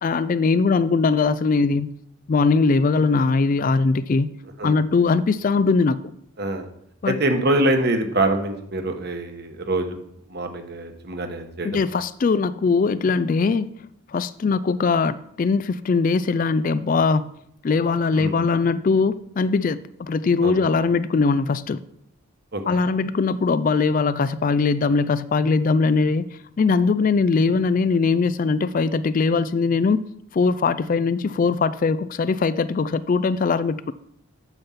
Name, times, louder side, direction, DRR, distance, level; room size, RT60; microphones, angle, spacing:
voice 1, 0.0-1.9 2.3-4.3 4.6-6.0 7.0-7.2 11.6-13.7 14.1-17.3 17.6-21.8 22.7-26.2 26.6-33.9, left 4 dB, 40° left, 15 dB, 0.3 m, -21 dB
voice 2, 7.1-10.0 10.3-11.7 18.2-18.3 20.4-20.6 22.5-22.6, right 1 dB, 50° right, 6 dB, 1.2 m, -24 dB
8.8 x 7.0 x 5.7 m, 0.73 s
head